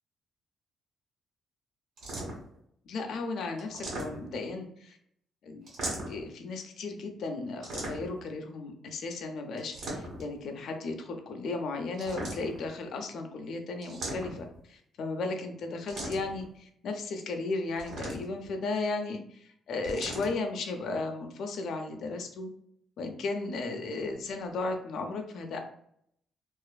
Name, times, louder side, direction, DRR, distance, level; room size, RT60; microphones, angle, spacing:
sound 1, 2.0-2.6 3.6-4.5 5.7-6.3 7.6-8.3 9.6-10.3 11.9-12.7 13.8-14.6 15.9-16.4 17.8-18.5 19.8-20.3, right 1 dB, 75° right, 1.1 m, -38 dB
voice 1, 2.9-5.0 5.4-5.6 6.1-22.5 23.0-25.6, left 3 dB, 70° left, 4 dB, 0.4 m, -35 dB
2.4 x 2.4 x 2.2 m, 0.70 s
cardioid pair, 90°, 0 cm